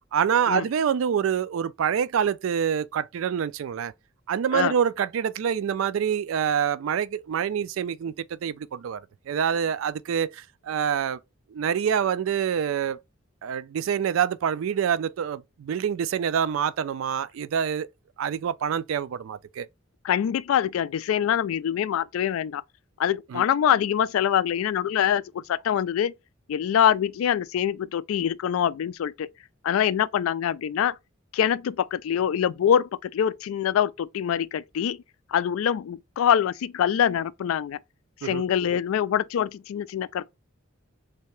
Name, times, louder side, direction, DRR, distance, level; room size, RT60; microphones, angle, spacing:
voice 1, 0.1-3.9 4.3-9.0 9.3-11.2 11.5-13.0 13.4-17.9 18.2-19.7 23.3-23.5 38.2-38.4, right 8 dB, 75° right, 0.3 m, -26 dB
voice 2, 20.0-22.6 23.0-26.1 26.5-29.3 29.6-31.0 31.3-35.0 35.3-37.8 38.2-40.3, left 9 dB, 85° left, 0.3 m, -24 dB
3.3 x 2.7 x 3.1 m
head